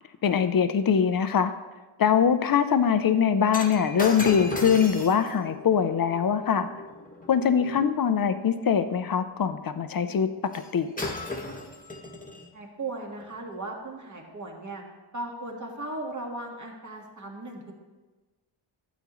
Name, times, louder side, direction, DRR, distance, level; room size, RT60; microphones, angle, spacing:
voice 1, 0.2-1.5 2.0-6.7 7.3-10.3 10.7-10.9, left 7 dB, 45° left, 10 dB, 0.6 m, -23 dB
Shatter, 3.5-7.9 10.5-10.7 11.0-12.5 13.2-13.4, left 2 dB, 15° left, 1.3 m, -36 dB
voice 2, 12.5-14.8 15.1-17.7, right 2 dB, 35° right, 0 dB, 1.8 m, -37 dB
13.0 x 8.2 x 3.1 m, 1.3 s
wide cardioid pair, 100°, 50 cm